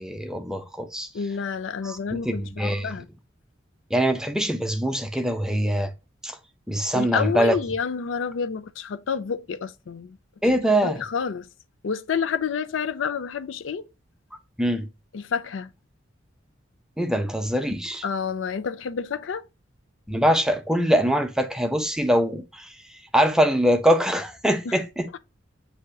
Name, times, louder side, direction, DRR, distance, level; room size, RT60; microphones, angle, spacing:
voice 1, 0.0-1.1 1.8-2.9 3.9-5.9 6.2-6.4 6.7-7.6 10.4-11.0 14.6-14.9 17.0-18.0 20.1-22.8 23.1-25.1, equal, 5° right, 0.4 m, -23 dB
voice 2, 1.1-3.1 6.9-10.2 10.8-11.5 11.8-13.9 15.1-15.7 18.0-19.5 24.6-24.8 25.1-25.2, left 6 dB, 85° left, 0.4 m, -29 dB
7.5 x 2.8 x 2.3 m
head